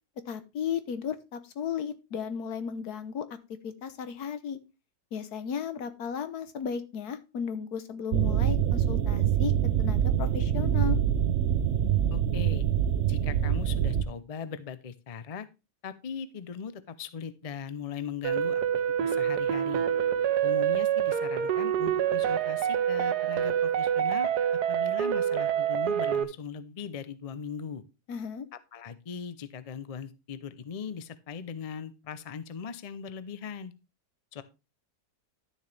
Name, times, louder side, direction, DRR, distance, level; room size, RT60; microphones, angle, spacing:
voice 1, 0.3-3.3 3.6-4.6 5.1-9.5 9.8-11.0 28.1-28.5, left 7 dB, 75° left, 11 dB, 1.5 m, -35 dB
sound 1, 8.1-14.0, right 10 dB, 60° right, 0.9 m, -25 dB
voice 2, 12.1-12.6 13.1-15.5 15.8-18.6 19.0-19.8 20.4-24.3 24.7-27.8 28.7-33.7 34.3-34.4, left 6 dB, 60° left, 14 dB, 0.4 m, -39 dB
sound 2, 18.2-26.2, right 9 dB, 85° right, 1.4 m, -26 dB
11.5 x 6.8 x 3.3 m, 0.28 s
omnidirectional pair, 1.7 m